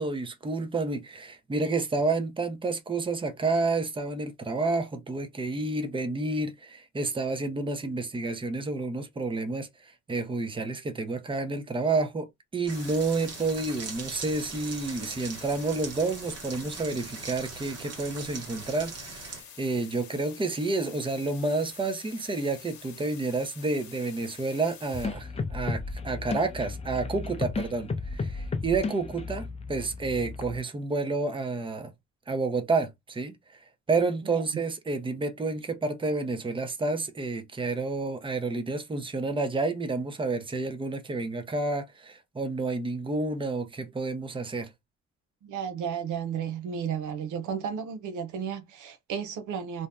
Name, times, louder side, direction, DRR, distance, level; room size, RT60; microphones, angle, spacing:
voice 1, 0.0-12.3 12.5-31.9 32.3-44.7, right 3 dB, 15° right, 0.7 m, -30 dB
sound 1, 12.6-19.4, right 5 dB, 55° right, 1.1 m, -41 dB
sound 2, 12.7-25.1, left 8 dB, 65° left, 0.9 m, -48 dB
sound 3, 24.9-30.6, left 4 dB, 20° left, 0.5 m, -34 dB
voice 2, 45.4-49.9, right 7 dB, 80° right, 0.7 m, -33 dB
2.6 x 2.1 x 3.5 m
cardioid pair, 90°, 30 cm